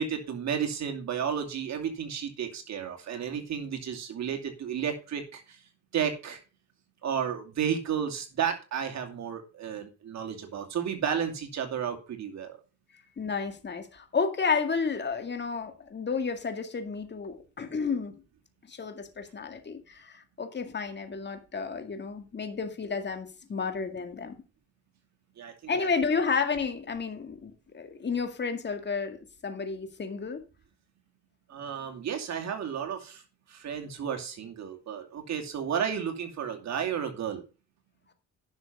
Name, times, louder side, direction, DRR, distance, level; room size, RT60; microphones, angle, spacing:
voice 1, 0.0-5.4 5.9-6.4 7.0-12.6 25.4-25.9 31.5-33.2 33.5-37.4, right 8 dB, 65° right, 2.7 m, -32 dB
voice 2, 13.2-18.2 18.7-24.4 25.7-30.4, left 5 dB, 35° left, 2.1 m, -31 dB
11.0 x 6.2 x 5.4 m
cardioid pair, 90°, 30 cm